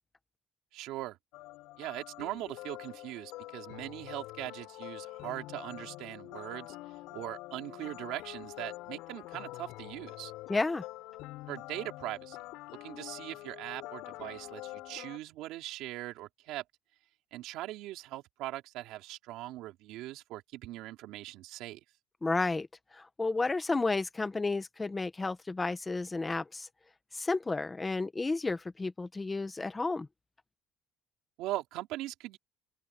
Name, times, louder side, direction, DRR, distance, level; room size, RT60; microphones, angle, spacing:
voice 1, 0.7-1.2 1.8-6.8 7.1-10.3 11.5-12.4 12.8-16.6 17.3-21.8 31.4-32.4, right 16 dB, 70° right, 3.5 m, -40 dB
sound 1, 1.3-15.2, left 19 dB, 75° left, 8.0 m, -46 dB
voice 2, 10.5-10.8 22.2-22.7 22.9-26.7 27.1-30.1, left 3 dB, 15° left, 1.1 m, -32 dB
open air
cardioid pair, 165°, 0 cm